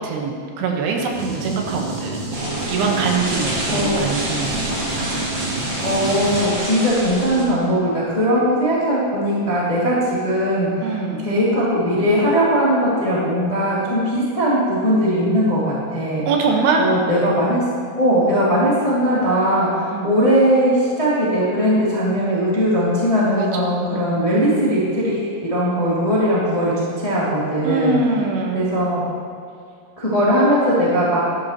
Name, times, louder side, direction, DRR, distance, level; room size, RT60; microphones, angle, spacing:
voice 1, 0.0-2.3 2.7-4.6 10.8-11.2 16.3-16.8 19.9-20.1 23.4-23.6 23.9-24.2 27.6-28.7, right 4 dB, 80° right, 1 dB, 3.2 m, -23 dB
sound 1, 1.1-6.4, right 3 dB, 50° right, 3.2 m, -29 dB
sound 2, 2.3-7.4, right 1 dB, 35° right, 2.8 m, -27 dB
voice 2, 3.7-4.0 5.8-10.9 11.2-16.3 16.8-17.6 18.0-28.0 28.5-29.0 30.0-31.2, equal, 15° left, -8 dB, 1.1 m, -19 dB
12.5 x 12.0 x 2.9 m, 2.3 s
omnidirectional pair, 4.7 m